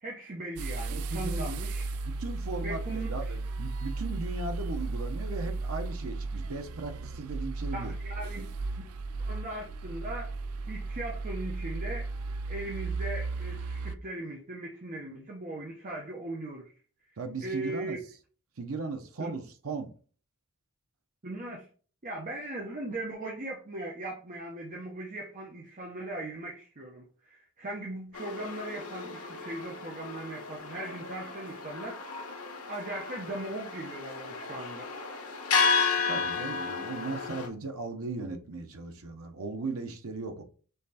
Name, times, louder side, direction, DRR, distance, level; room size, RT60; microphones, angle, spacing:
voice 1, 0.0-1.9 2.6-3.3 7.7-8.5 9.2-10.3 10.7-12.1 12.5-16.7 17.4-18.0 19.2-19.3 21.2-21.7 22.0-32.3 32.7-34.9, right 1 dB, 40° right, 0.8 m, -39 dB
sound 1, 0.6-14.0, right 3 dB, 85° right, 0.4 m, -35 dB
voice 2, 0.9-1.5 2.1-7.9 17.2-18.0 18.6-19.9 36.1-40.4, right 3 dB, 70° right, 0.8 m, -37 dB
sound 2, 28.1-37.5, left 5 dB, 85° left, 1.1 m, -33 dB
5.6 x 3.2 x 2.8 m
head